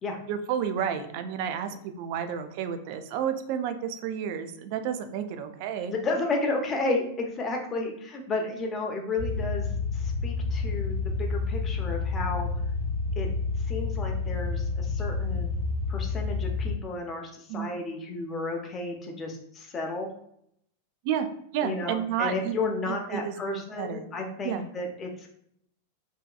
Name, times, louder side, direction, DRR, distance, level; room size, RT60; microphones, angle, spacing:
voice 1, 0.3-6.0 17.5-17.7 21.0-21.3 21.5-24.1 24.4-24.6, right 8 dB, 55° right, 8 dB, 0.3 m, -31 dB
voice 2, 5.9-9.7 9.9-12.5 13.2-13.3 13.7-15.5 15.9-20.1 21.6-25.3, left 3 dB, 30° left, 2 dB, 0.6 m, -32 dB
sound 1, 9.2-16.8, left 4 dB, 75° right, 0.9 m, -29 dB
2.7 x 2.3 x 2.2 m, 0.72 s
hypercardioid pair, 100°, 0 cm